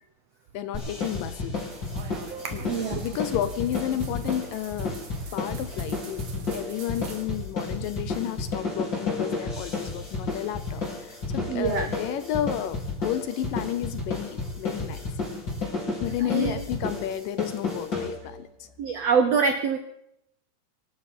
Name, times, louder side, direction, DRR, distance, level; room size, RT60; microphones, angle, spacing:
voice 1, 0.5-1.6 2.5-5.0 5.3-15.0 16.0-18.7, left 11 dB, 75° left, 12 dB, 2.2 m, -32 dB
sound 1, 0.7-18.5, left 3 dB, 30° left, 5.0 m, -32 dB
sound 2, 1.7-7.2, right 6 dB, 55° right, 2.4 m, -44 dB
voice 2, 2.3-3.0 11.5-11.9 16.3-16.5 18.8-19.8, right 6 dB, 85° right, 7 dB, 1.4 m, -25 dB
24.5 x 12.5 x 4.3 m, 0.77 s
omnidirectional pair, 4.4 m